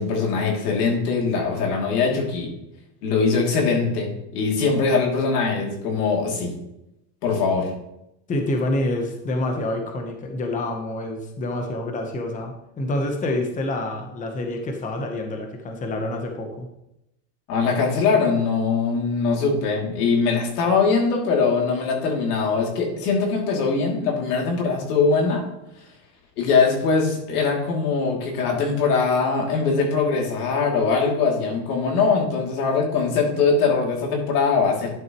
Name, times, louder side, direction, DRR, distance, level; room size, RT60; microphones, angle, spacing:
voice 1, 0.0-2.5 3.0-6.5 7.2-7.7 17.5-25.4 26.4-34.9, left 4 dB, 90° left, 0 dB, 2.8 m, -22 dB
voice 2, 8.3-16.7, left 1 dB, 15° left, 4 dB, 0.9 m, -27 dB
11.0 x 6.3 x 3.0 m, 0.84 s
supercardioid pair, 150°, 45 cm